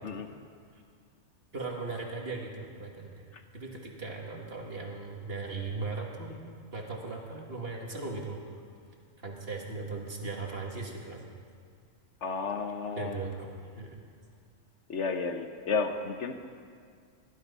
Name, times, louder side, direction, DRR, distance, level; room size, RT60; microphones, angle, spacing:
voice 1, 1.5-3.2 3.5-6.4 6.7-8.4 9.2-11.2 13.0-13.5 13.8-14.0, right 3 dB, 45° right, 0 dB, 2.0 m, -38 dB
voice 2, 12.2-13.2 14.9-16.3, left 4 dB, 60° left, 6 dB, 1.1 m, -32 dB
18.0 x 12.0 x 5.5 m, 2.1 s
omnidirectional pair, 1.4 m